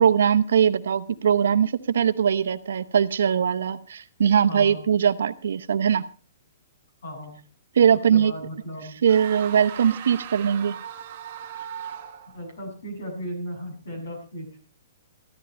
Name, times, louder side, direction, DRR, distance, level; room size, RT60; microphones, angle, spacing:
voice 1, 0.0-6.0 7.8-8.3 9.0-10.8, right 8 dB, 65° right, 12 dB, 0.9 m, -21 dB
voice 2, 4.5-4.8 7.0-7.4 8.1-9.0 12.3-14.6, equal, 70° left, 3 dB, 7.6 m, -36 dB
sound 1, 9.1-12.4, right 9 dB, 30° right, 1.4 m, -38 dB
14.5 x 13.0 x 4.4 m, 0.36 s
hypercardioid pair, 180°, 0 cm